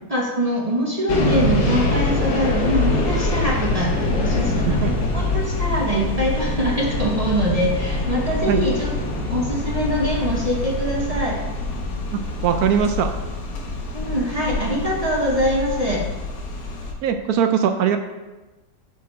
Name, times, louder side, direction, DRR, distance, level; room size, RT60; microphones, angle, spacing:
voice 1, 0.1-8.9 9.3-11.4 13.9-16.0, equal, 30° right, -2 dB, 0.8 m, -23 dB
sound 1, 1.1-16.9, left 2 dB, 55° left, 1.4 m, -24 dB
voice 2, 12.1-13.1 17.0-18.0, right 8 dB, 70° right, 7 dB, 0.9 m, -20 dB
7.2 x 4.6 x 4.8 m, 1.1 s
omnidirectional pair, 2.0 m